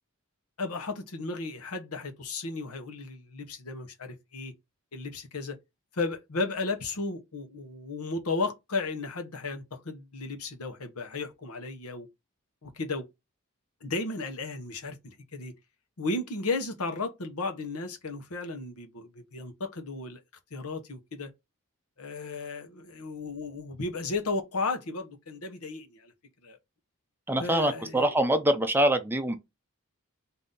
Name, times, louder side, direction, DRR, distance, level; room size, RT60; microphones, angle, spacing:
voice 1, 0.6-4.5 4.9-5.6 5.9-12.1 12.6-13.1 13.8-15.5 16.0-20.2 20.5-21.3 22.0-26.1 26.4-26.6 27.4-28.1, left 3 dB, 80° left, 1.0 m, -34 dB
voice 2, 27.3-29.4, right 1 dB, 10° right, 0.4 m, -24 dB
3.9 x 2.7 x 3.7 m
head